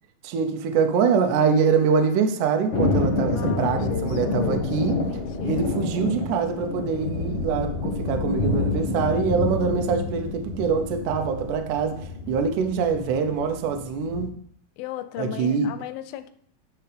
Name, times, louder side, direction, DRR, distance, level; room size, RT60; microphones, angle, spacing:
voice 1, 0.2-5.0 5.4-12.0 12.3-14.3 15.2-15.8, right 6 dB, 75° right, 2.1 m, -24 dB
Thunder, 2.7-14.2, left 3 dB, 70° left, 1.2 m, -28 dB
voice 2, 3.3-4.7 5.1-5.7 14.8-16.3, left 12 dB, 90° left, 2.4 m, -35 dB
10.5 x 6.0 x 3.4 m
omnidirectional pair, 4.1 m